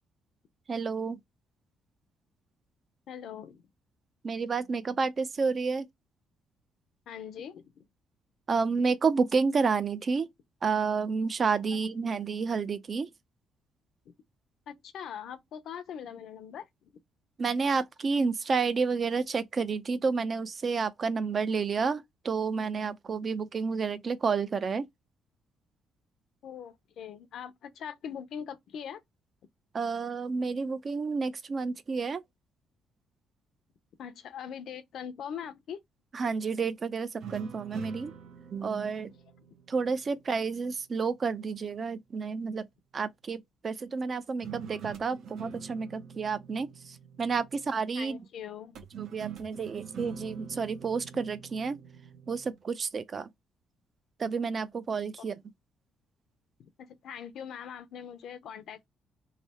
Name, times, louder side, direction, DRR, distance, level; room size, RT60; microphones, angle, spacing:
voice 1, 0.7-1.2 4.2-5.9 8.5-10.3 10.6-13.1 17.4-24.9 29.7-32.2 36.1-38.1 38.5-39.1 39.7-42.7 42.9-48.2 49.0-51.8 52.3-53.3 54.2-55.4, right 5 dB, 35° right, 0.5 m, -30 dB
voice 2, 3.1-3.6 7.1-7.8 11.7-11.8 14.7-16.9 26.4-29.0 34.0-35.8 47.9-48.8 56.6-58.9, left 8 dB, 65° left, 0.7 m, -42 dB
sound 1, 37.2-40.6 44.4-47.8 48.7-52.6, right 8 dB, 70° right, 0.9 m, -45 dB
3.3 x 2.7 x 4.1 m
cardioid pair, 125°, 0 cm